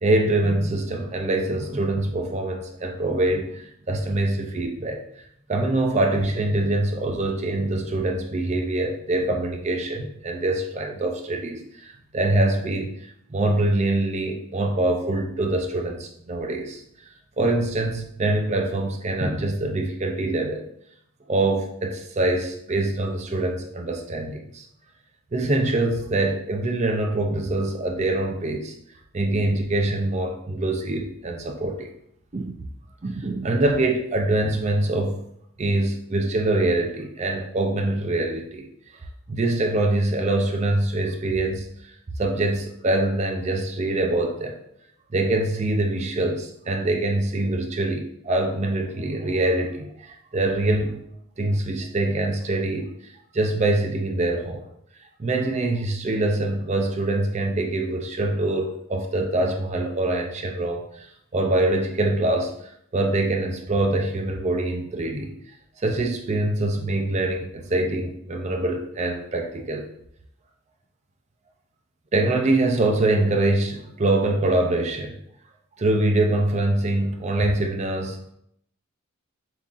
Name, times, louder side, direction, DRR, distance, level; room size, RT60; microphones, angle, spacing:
voice 1, 0.0-16.8 17.4-20.7 21.3-24.6 25.3-28.7 29.1-31.9 32.3-32.5 33.0-35.2 35.6-38.7 39.3-41.7 42.2-44.6 45.1-51.0 51.4-54.6 55.2-65.3 65.8-69.9 72.1-75.2 75.8-78.3, right 2 dB, 30° right, 2 dB, 0.4 m, -24 dB
7.1 x 2.7 x 2.4 m, 0.71 s
head